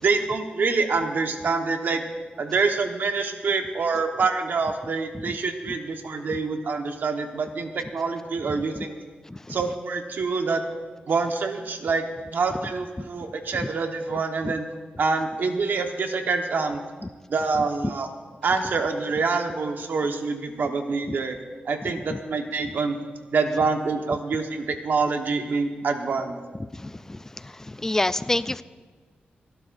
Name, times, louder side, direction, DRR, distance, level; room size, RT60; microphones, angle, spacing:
voice 1, 0.0-2.0 2.4-8.9 9.5-10.6 11.1-12.0 12.3-14.7 15.0-16.8 17.3-18.1 18.4-21.4 21.7-23.0 23.3-26.4, right 4 dB, 65° right, 5 dB, 1.2 m, -26 dB
voice 2, 27.8-28.6, left 2 dB, 15° left, 15 dB, 0.3 m, -24 dB
27.5 x 12.0 x 2.6 m, 1.5 s
wide cardioid pair, 145°, 3 cm